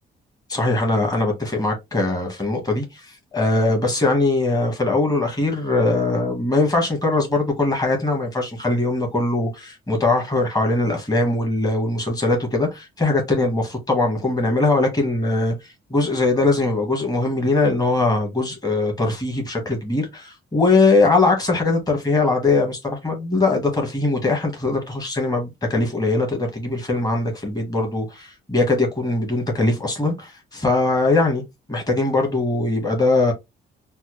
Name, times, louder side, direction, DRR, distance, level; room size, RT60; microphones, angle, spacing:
voice 1, 0.5-15.5 15.9-31.4 31.7-33.3, left 2 dB, 20° left, 1.5 m, -21 dB
4.2 x 2.1 x 3.1 m
cardioid pair, 90°, 20 cm